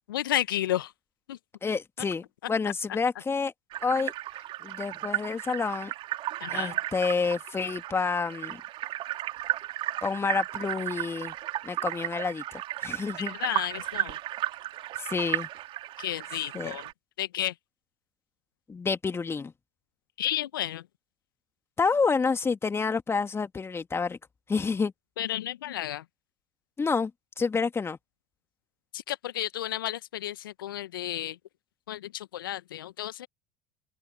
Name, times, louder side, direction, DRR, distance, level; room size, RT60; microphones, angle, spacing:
voice 1, 0.1-0.9 1.3-1.4 2.0-2.1 6.4-6.8 13.2-14.2 16.0-16.9 17.2-17.5 20.2-20.9 25.2-26.0 28.9-31.4 31.9-33.3, left 13 dB, 75° left, 1.5 m, -32 dB
voice 2, 1.6-2.2 2.5-3.5 3.8-4.1 4.6-5.9 6.5-8.6 10.0-11.3 11.6-13.3 15.0-15.5 16.5-16.7 18.7-19.5 21.8-24.2 24.5-24.9 26.8-27.1 27.4-28.0, left 5 dB, 20° left, 2.2 m, -28 dB
sound 1, 3.7-16.9, right 14 dB, 50° right, 2.7 m, -34 dB
open air
hypercardioid pair, 70°, 11 cm